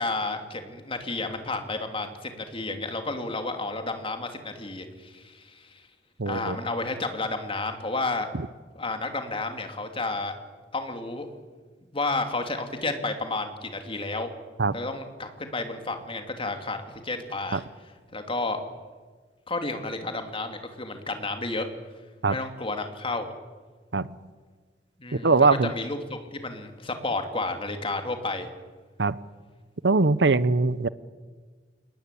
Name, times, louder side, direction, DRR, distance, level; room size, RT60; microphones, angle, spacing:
voice 1, 0.0-5.8 6.2-8.3 8.7-10.3 10.7-11.3 11.9-14.3 14.7-17.6 18.1-18.6 19.5-21.7 22.3-23.3 25.0-28.5, left 3 dB, 30° left, 6 dB, 2.8 m, -31 dB
voice 2, 6.2-6.6 14.6-14.7 17.5-17.6 22.2-22.4 23.9-24.2 25.1-25.7 29.0-29.2 29.8-30.9, right 3 dB, 70° right, 17 dB, 0.8 m, -21 dB
28.5 x 20.0 x 8.5 m, 1.4 s
head